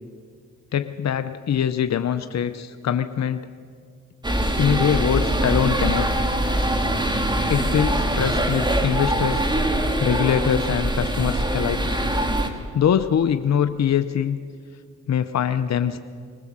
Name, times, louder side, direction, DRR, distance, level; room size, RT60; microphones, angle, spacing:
voice 1, 0.7-3.5 4.6-6.1 7.5-9.5 10.0-11.8 12.7-14.4 15.1-16.0, left 8 dB, 65° left, 10 dB, 0.8 m, -23 dB
sound 1, 4.2-12.5, right 1 dB, 15° right, 2.4 m, -23 dB
20.0 x 20.0 x 7.4 m, 2.1 s
cardioid pair, 50°, 29 cm